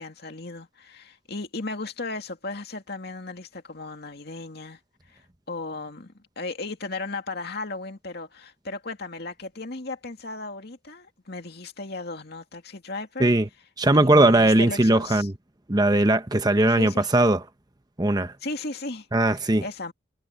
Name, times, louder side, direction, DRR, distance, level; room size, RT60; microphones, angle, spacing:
voice 1, 0.0-4.8 5.1-13.3 13.9-15.3 16.8-17.1 18.4-19.1 19.3-19.9, left 3 dB, 55° left, 2.4 m, -36 dB
voice 2, 13.8-15.3 15.7-17.4 18.0-18.3 19.1-19.6, right 1 dB, 20° right, 1.0 m, -19 dB
head